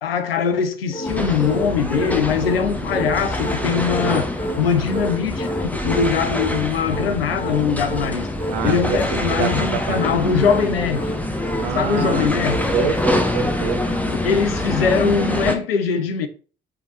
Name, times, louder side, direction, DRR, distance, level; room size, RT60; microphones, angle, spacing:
voice 1, 0.0-8.3 8.6-11.2 11.7-12.7 14.1-16.3, left 6 dB, 85° left, 0.6 m, -22 dB
sound 1, 0.9-12.7, equal, 35° left, 2.6 m, -30 dB
sound 2, 1.0-15.6, left 1 dB, 5° left, 1.1 m, -25 dB
voice 2, 8.5-10.4 11.6-12.3 12.7-13.8, right 6 dB, 65° right, 1.1 m, -26 dB
6.9 x 3.7 x 3.8 m
figure-of-eight pair, 50°, 29 cm